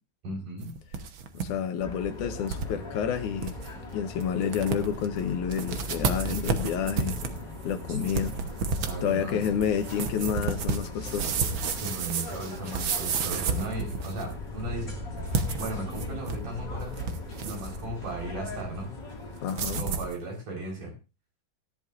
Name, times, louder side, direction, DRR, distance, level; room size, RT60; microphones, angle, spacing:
voice 1, 0.2-0.7 8.8-9.5 11.7-15.0 15.6-17.1 17.4-18.9 19.8-20.9, right 1 dB, 80° right, 0 dB, 5.7 m, -36 dB
sound 1, 0.6-1.5 1.8-1.9 2.5-2.7 3.1-3.2 3.4-3.7 4.2-4.3 4.5-5.1 5.5-14.3 15.2-16.5 16.8-17.8 19.5-20.1, right 5 dB, 65° right, 1.2 m, -31 dB
voice 2, 1.3-3.6 3.9-7.2 7.6-8.4 9.0-11.3 19.4-19.8, left 8 dB, 75° left, 9 dB, 2.4 m, -29 dB
sound 2, 1.8-19.5, left 2 dB, 35° left, 2.9 m, -39 dB
17.5 x 11.0 x 2.5 m, 0.29 s
omnidirectional pair, 3.7 m